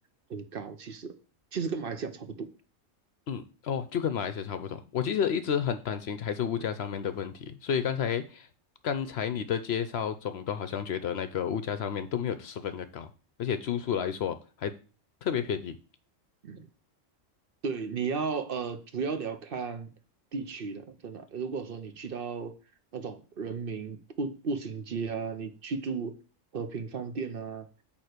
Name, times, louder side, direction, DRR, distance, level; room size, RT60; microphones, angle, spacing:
voice 1, 0.3-1.1 1.5-2.5 6.6-6.7 16.4-16.7 17.6-19.9 20.3-22.5 22.9-26.1 26.5-27.7, right 5 dB, 50° right, 0.9 m, -34 dB
voice 2, 3.3-8.5 8.8-13.1 13.4-14.7 15.2-15.7, left 8 dB, 60° left, 0.8 m, -31 dB
8.8 x 3.0 x 6.5 m
omnidirectional pair, 1.3 m